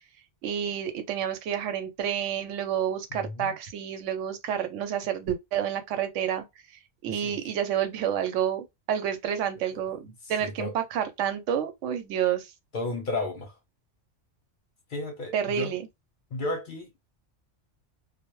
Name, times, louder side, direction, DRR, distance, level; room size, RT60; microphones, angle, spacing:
voice 1, 0.4-12.5 15.3-15.9, right 9 dB, 85° right, 0.9 m, -29 dB
voice 2, 3.1-3.5 7.1-7.4 9.7-9.8 10.2-10.7 12.7-13.6 14.9-15.7 16.3-16.9, left 2 dB, 55° left, 0.6 m, -33 dB
2.1 x 2.0 x 2.9 m
omnidirectional pair, 1.2 m